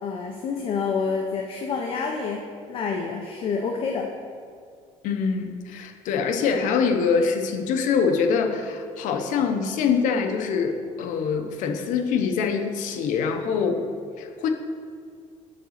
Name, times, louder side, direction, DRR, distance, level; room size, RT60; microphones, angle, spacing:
voice 1, 0.0-4.1, left 5 dB, 45° left, 2 dB, 0.6 m, -28 dB
voice 2, 5.0-13.9 14.2-14.5, left 5 dB, 75° left, 5 dB, 0.8 m, -24 dB
7.6 x 4.0 x 6.4 m, 2.1 s
cardioid pair, 170°, 13 cm